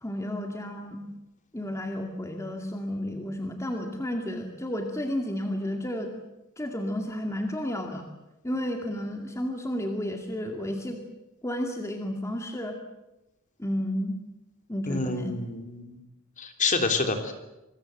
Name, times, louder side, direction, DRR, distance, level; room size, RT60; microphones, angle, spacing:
voice 1, 0.0-1.1 1.5-6.1 6.6-8.0 8.4-11.0 11.4-12.8 13.6-14.2 14.7-15.3, left 1 dB, 15° left, 3 dB, 2.4 m, -32 dB
voice 2, 14.9-16.0 16.4-17.3, left 3 dB, 35° left, 6 dB, 3.4 m, -28 dB
27.5 x 22.0 x 8.0 m, 0.96 s
head